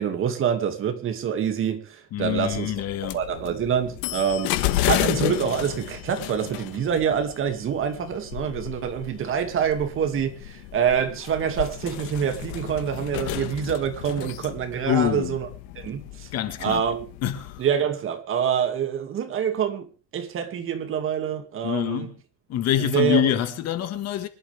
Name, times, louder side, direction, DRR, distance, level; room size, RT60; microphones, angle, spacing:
voice 1, 0.0-2.7 3.0-15.5 15.8-16.3 16.6-17.1 17.6-22.1 22.9-23.3, right 8 dB, 35° right, 2.4 m, -26 dB
voice 2, 2.1-3.2 14.8-15.4 16.3-16.8 17.2-17.6 21.6-22.2 22.5-24.3, left 11 dB, 45° left, 1.7 m, -25 dB
sound 1, 2.2-17.6, left 14 dB, 90° left, 1.7 m, -32 dB
25.5 x 11.5 x 3.5 m
cardioid pair, 180°, 36 cm